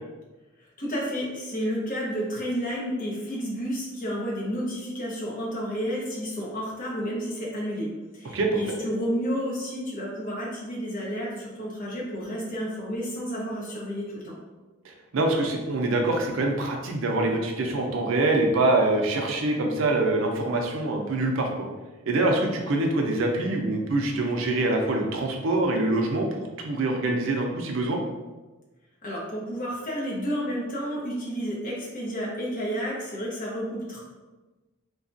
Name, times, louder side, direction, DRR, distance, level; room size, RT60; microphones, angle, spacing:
voice 1, 0.8-14.3 29.0-34.0, equal, 40° left, -5 dB, 0.8 m, -31 dB
voice 2, 8.3-8.8 14.8-21.7 22.1-28.0, right 2 dB, 70° right, 2 dB, 0.5 m, -25 dB
2.7 x 2.3 x 2.6 m, 1.2 s
head